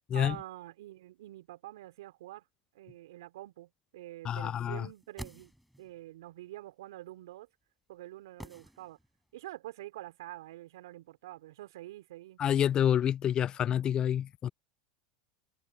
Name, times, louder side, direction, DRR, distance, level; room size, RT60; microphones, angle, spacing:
voice 1, 0.1-2.4 2.7-5.5 5.8-7.5 7.9-9.0 9.3-12.4, right 15 dB, 75° right, 3.8 m, -46 dB
voice 2, 4.2-4.9 12.4-14.5, left 10 dB, 35° left, 0.3 m, -28 dB
sound 1, 4.8-6.0 8.4-9.3 9.6-9.7, equal, ahead, 7.1 m, -48 dB
hypercardioid pair, 85°, 2 cm